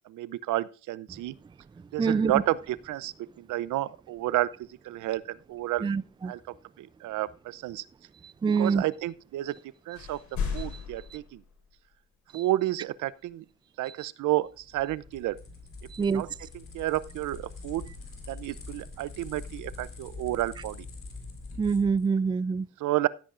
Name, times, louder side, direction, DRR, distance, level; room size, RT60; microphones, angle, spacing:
voice 1, 0.1-1.3 1.9-4.5 4.8-5.9 6.2-6.4 6.8-7.8 8.6-9.6 9.9-10.2 10.5-11.4 12.3-13.4 13.8-15.4 16.0-17.9 18.3-20.9 22.8-23.1, right 15 dB, 80° right, 0.6 m, -31 dB
voice 2, 2.0-2.3 5.8-6.3 8.4-8.8 15.9-16.2 21.6-22.7, right 5 dB, 15° right, 0.4 m, -25 dB
sound 1, 9.5-9.7 9.9-12.0, left 6 dB, 75° left, 4.8 m, -36 dB
sound 2, 14.4-22.1, left 3 dB, 45° left, 3.9 m, -44 dB
15.5 x 8.5 x 2.5 m
cardioid pair, 90°, 30 cm